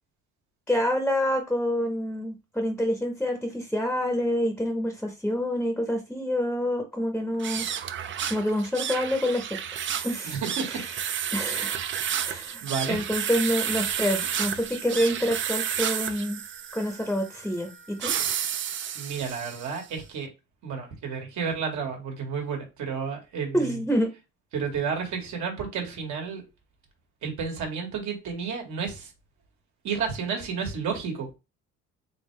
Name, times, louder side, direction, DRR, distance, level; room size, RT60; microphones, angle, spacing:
voice 1, 0.7-7.7 8.3-9.6 10.0-10.4 10.7-10.8 11.3-11.8 12.2-12.6 12.9-16.4 16.7-18.1 23.5-24.1, equal, 5° left, 0.8 m, -27 dB
sound 1, 7.3-19.8, right 9 dB, 40° right, 0.5 m, -31 dB
voice 2, 10.2-10.8 12.6-13.0 18.9-20.3 20.6-23.8 24.5-26.4 27.2-29.1 29.8-31.3, right 6 dB, 70° right, 1.7 m, -31 dB
3.7 x 3.4 x 3.2 m
cardioid pair, 115°, 30 cm